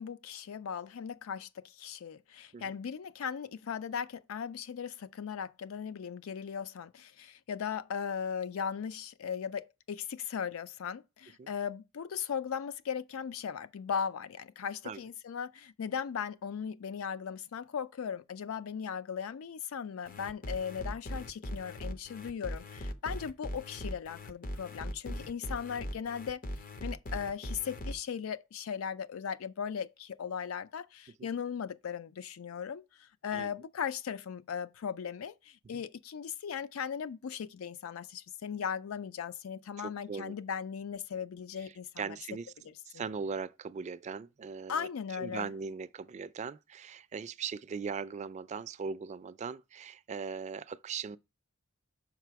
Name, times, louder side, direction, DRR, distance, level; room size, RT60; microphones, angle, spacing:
voice 1, 0.0-26.4 26.8-42.2 42.7-42.8 44.7-45.5, left 7 dB, 85° left, 0.4 m, -38 dB
sound 1, 20.1-27.9, equal, 40° left, 0.6 m, -40 dB
voice 2, 39.8-40.4 42.0-42.5 42.9-51.2, right 5 dB, 35° right, 0.3 m, -39 dB
5.9 x 4.8 x 4.6 m
head